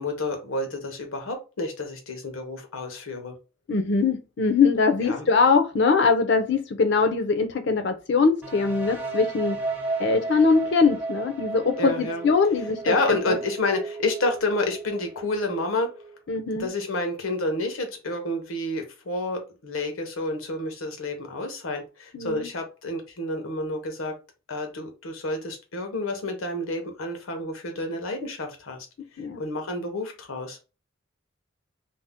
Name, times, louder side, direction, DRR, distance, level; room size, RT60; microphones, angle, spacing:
voice 1, 0.0-3.3 5.0-5.3 11.8-12.2 12.8-15.9 16.6-24.1 24.5-28.8 29.4-30.6, left 2 dB, 85° left, 0.8 m, -29 dB
voice 2, 3.7-9.6 10.0-13.3 16.3-16.7 22.1-22.5 29.2-29.4, left 4 dB, 55° left, 0.5 m, -22 dB
sound 1, 8.4-16.2, right 3 dB, 10° right, 0.4 m, -34 dB
2.6 x 2.0 x 3.4 m
head